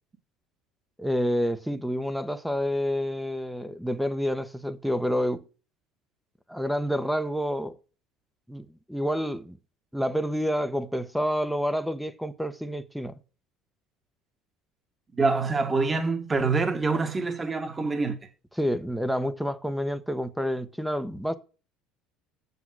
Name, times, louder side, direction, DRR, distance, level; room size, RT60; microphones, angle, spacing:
voice 1, 1.0-5.4 6.5-7.8 8.5-9.6 9.9-13.1 18.6-21.4, equal, ahead, 1.0 m, -28 dB
voice 2, 15.1-18.2, right 4 dB, 20° right, 1.5 m, -25 dB
8.3 x 7.1 x 6.2 m
supercardioid pair, 100°, 0 cm